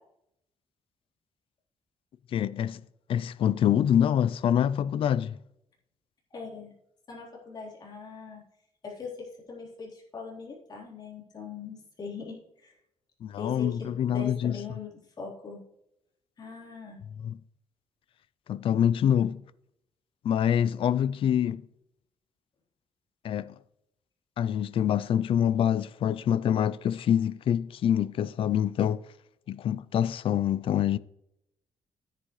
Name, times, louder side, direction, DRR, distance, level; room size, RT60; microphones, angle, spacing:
voice 1, 2.3-2.8 3.1-5.4 13.2-14.6 17.2-17.4 18.5-19.4 20.2-21.6 23.2-23.6 24.4-29.0 29.5-31.0, left 9 dB, 55° left, 0.4 m, -25 dB
voice 2, 6.3-6.7 7.1-8.4 8.8-12.7 13.4-14.9 15.2-15.6 16.4-17.0, left 5 dB, 40° left, 3.7 m, -41 dB
11.0 x 10.0 x 3.1 m
cardioid pair, 155°, 11 cm